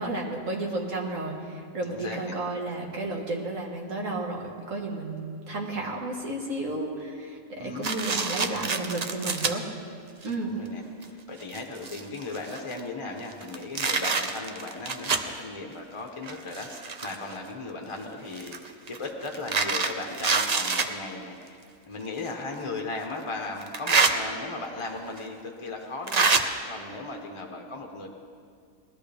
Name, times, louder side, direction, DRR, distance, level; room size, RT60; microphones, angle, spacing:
voice 1, 0.0-9.6 10.2-10.5, right 2 dB, 65° right, -1 dB, 2.1 m, -32 dB
voice 2, 1.9-2.4 7.6-7.9 10.4-10.8 11.1-21.6 21.9-28.1, left 3 dB, 25° left, 1 dB, 0.9 m, -37 dB
sound 1, 7.8-9.5 10.2-10.3 11.0-11.1 11.4-12.8 13.3-15.3 16.2-17.3 18.3-20.9 22.2-22.3 23.6-24.1 25.2-25.3 26.1-26.4, right 4 dB, 50° right, 0.5 m, -26 dB
20.0 x 13.0 x 3.5 m, 2.2 s
omnidirectional pair, 1.5 m